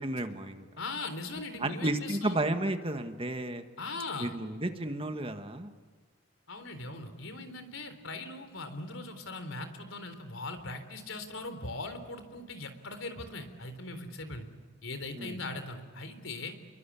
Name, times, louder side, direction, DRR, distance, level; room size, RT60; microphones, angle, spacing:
voice 1, 0.0-0.7 1.6-3.7 4.2-5.7 15.1-15.4, right 1 dB, 30° right, 7 dB, 1.8 m, -32 dB
voice 2, 0.8-2.4 3.8-4.3 6.5-14.4 14.8-16.6, left 2 dB, 90° left, 9 dB, 3.8 m, -40 dB
30.0 x 23.0 x 8.6 m, 1.5 s
head